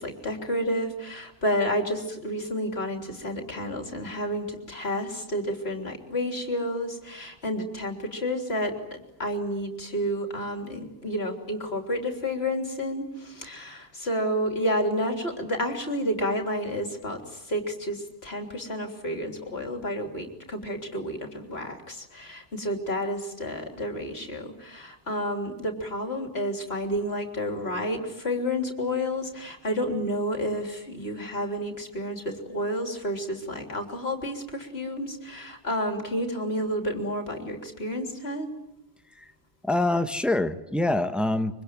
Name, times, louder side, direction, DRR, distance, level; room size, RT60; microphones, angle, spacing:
voice 1, 0.0-17.2 17.5-38.5, equal, 60° left, 4 dB, 3.8 m, -30 dB
voice 2, 39.6-41.6, left 2 dB, ahead, 9 dB, 1.1 m, -25 dB
25.0 x 24.5 x 9.3 m, 0.90 s
omnidirectional pair, 1.2 m